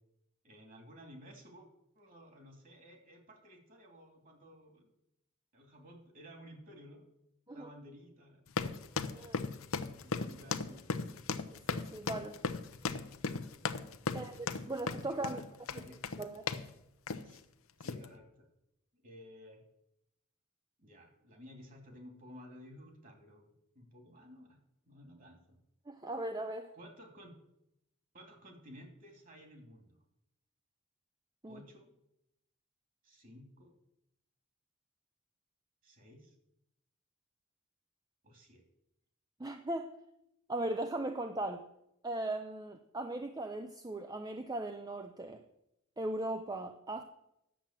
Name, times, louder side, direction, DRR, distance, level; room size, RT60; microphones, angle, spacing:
voice 1, 0.4-1.7 1.9-4.9 5.5-7.1 7.5-8.4 10.0-11.1 14.0-14.3 15.0-15.4 15.7-16.0 17.2-17.4 17.8-18.5 18.9-19.6 20.8-23.5 23.7-24.6 24.8-25.6 26.7-27.3 28.1-30.0 31.5-31.9 33.0-33.7 35.8-36.3 38.2-38.6, equal, 40° right, 3 dB, 2.7 m, -54 dB
sound 1, 8.5-16.7 17.1-17.4 17.8-18.1, left 4 dB, 70° left, 0.7 m, -37 dB
voice 2, 9.1-9.5 11.5-12.4 14.1-15.4 16.2-16.5 25.9-26.7 31.4-31.6 39.4-39.9 40.5-41.6 42.0-45.4 46.0-47.0, right 1 dB, 20° right, 7 dB, 0.5 m, -38 dB
10.0 x 7.6 x 7.4 m, 0.82 s
head